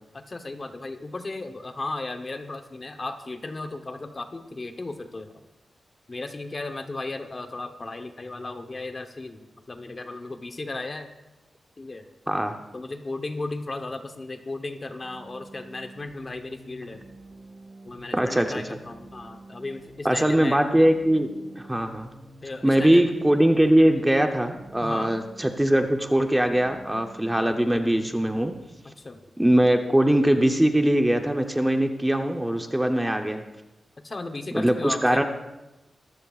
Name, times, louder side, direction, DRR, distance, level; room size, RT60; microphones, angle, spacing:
voice 1, 0.1-5.4 6.1-11.1 11.8-12.0 12.7-17.0 17.8-20.6 22.4-23.1 24.8-25.1 28.8-29.2 34.0-35.2, left 2 dB, 30° left, 7 dB, 0.9 m, -35 dB
sound 1, 15.0-28.6, right 1 dB, 55° right, 2.8 m, -48 dB
voice 2, 18.1-18.5 20.0-21.3 21.6-22.1 22.6-28.5 29.4-33.4 34.5-35.2, right 1 dB, 5° right, 5 dB, 0.7 m, -21 dB
24.0 x 14.0 x 2.4 m, 0.99 s
wide cardioid pair, 175°, 0 cm